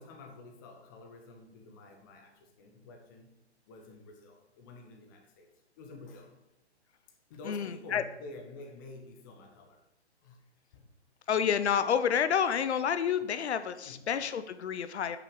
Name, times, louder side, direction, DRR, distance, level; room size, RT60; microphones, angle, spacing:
voice 1, 0.0-3.3 3.6-5.5 5.8-6.4 7.3-9.8 10.2-10.4 10.7-10.8 13.2-13.3 13.8-14.1, left 2 dB, 20° left, 3 dB, 0.6 m, -49 dB
voice 2, 7.5-8.0 11.3-15.2, left 8 dB, 75° left, 12 dB, 0.6 m, -29 dB
5.9 x 4.6 x 5.1 m, 0.89 s
hypercardioid pair, 145°, 34 cm